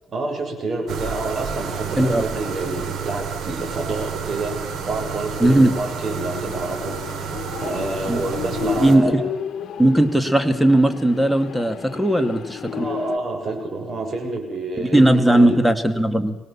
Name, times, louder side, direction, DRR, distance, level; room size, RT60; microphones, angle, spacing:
voice 1, 0.1-4.6 4.9-7.3 7.6-9.1 12.7-15.6, right 2 dB, 45° right, 2 dB, 7.2 m, -28 dB
sound 1, 0.9-9.0, right 7 dB, 70° right, 4.2 m, -30 dB
sound 2, 1.8-3.1 3.4-3.5 4.2-13.2, left 8 dB, 65° left, 1.4 m, -33 dB
voice 2, 5.4-5.7 8.1-8.2 8.8-9.2 9.8-12.9 14.8-16.4, right 1 dB, 5° right, 9 dB, 2.1 m, -17 dB
24.0 x 18.5 x 7.3 m, 1.1 s
cardioid pair, 90°, 0 cm